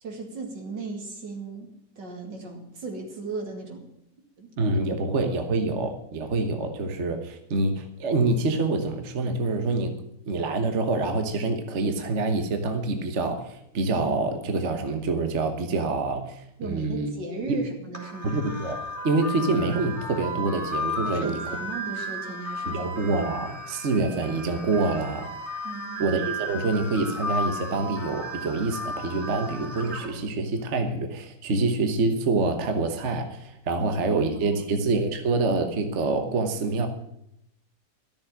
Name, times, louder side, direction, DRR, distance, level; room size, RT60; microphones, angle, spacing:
voice 1, 0.0-3.9 4.4-4.5 5.0-5.1 16.6-18.3 21.0-22.9 25.6-26.1 33.8-34.8, right 3 dB, 70° right, 2 dB, 3.1 m, -37 dB
voice 2, 4.6-10.0 10.3-17.1 17.5-17.7 18.2-18.8 19.0-21.4 22.7-25.3 26.0-36.9, right 3 dB, 40° right, 6 dB, 1.3 m, -26 dB
sound 1, 17.9-30.1, equal, 15° right, 3.5 m, -34 dB
13.0 x 7.1 x 10.0 m, 0.79 s
omnidirectional pair, 2.0 m